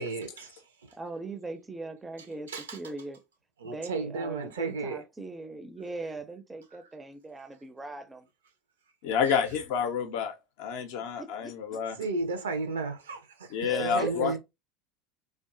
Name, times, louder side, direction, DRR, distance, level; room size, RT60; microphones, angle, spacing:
voice 1, 0.0-0.9 2.5-2.8 3.6-5.0 9.3-9.4 12.0-14.4, right 3 dB, 75° right, 0.5 m, -34 dB
voice 2, 1.0-3.2 3.6-8.3 11.2-12.1 13.6-14.4, right 3 dB, 15° right, 0.4 m, -40 dB
voice 3, 9.0-12.0 13.5-14.4, left 7 dB, 60° left, 0.4 m, -29 dB
2.6 x 2.3 x 2.4 m
figure-of-eight pair, 75°, 0 cm